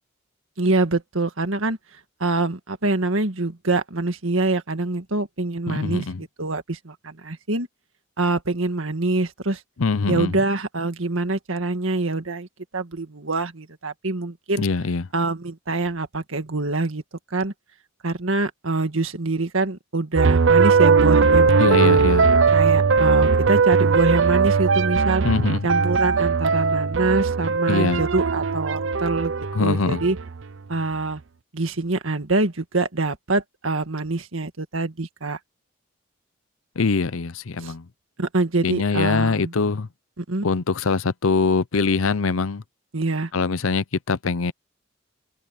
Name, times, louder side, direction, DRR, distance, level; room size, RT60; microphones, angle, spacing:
voice 1, 0.6-6.0 6.4-7.7 8.2-9.6 10.1-12.5 12.7-14.6 15.1-17.0 17.3-17.5 18.0-22.0 22.5-25.2 25.6-29.3 29.6-30.2 30.7-31.2 31.5-35.4 37.6-37.7 38.2-39.5 40.2-40.5 42.9-43.3, right 2 dB, 80° right, 1.8 m, -25 dB
voice 2, 5.7-6.2 9.8-10.4 14.6-15.1 21.6-22.3 25.2-25.7 27.7-28.0 29.5-30.0 36.8-37.9 38.6-39.9 40.4-42.6 43.3-44.5, left 4 dB, 85° left, 0.7 m, -23 dB
sound 1, 20.2-30.4, right 5 dB, 65° right, 0.6 m, -19 dB
head